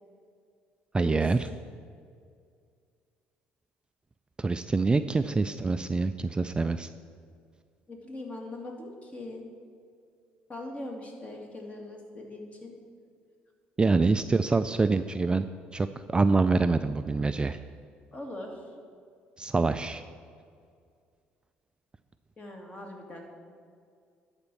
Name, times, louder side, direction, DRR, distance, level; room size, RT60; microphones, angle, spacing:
voice 1, 0.9-1.4 4.4-6.9 13.8-15.4 15.7-17.6 19.4-20.0, right 3 dB, 20° right, 10 dB, 0.3 m, -25 dB
voice 2, 5.2-5.6 7.9-9.4 10.5-12.7 14.0-14.6 18.1-18.7 22.4-23.3, left 2 dB, 30° left, 1 dB, 2.2 m, -41 dB
11.5 x 4.4 x 6.9 m, 2.2 s
supercardioid pair, 75°, 5 cm